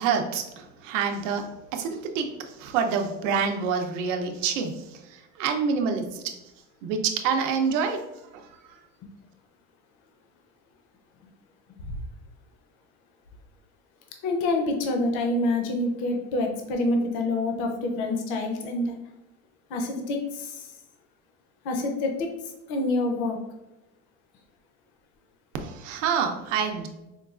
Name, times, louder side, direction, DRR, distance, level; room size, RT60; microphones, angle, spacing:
voice 1, 0.0-1.5 1.7-2.3 2.6-4.8 5.4-6.3 6.8-8.0 25.6-26.9, right 6 dB, 85° right, 5 dB, 0.6 m, -27 dB
voice 2, 14.2-19.0 19.7-20.7 21.6-23.4, left 2 dB, 60° left, 3 dB, 0.6 m, -27 dB
4.5 x 2.3 x 2.4 m, 0.95 s
cardioid pair, 170°, 37 cm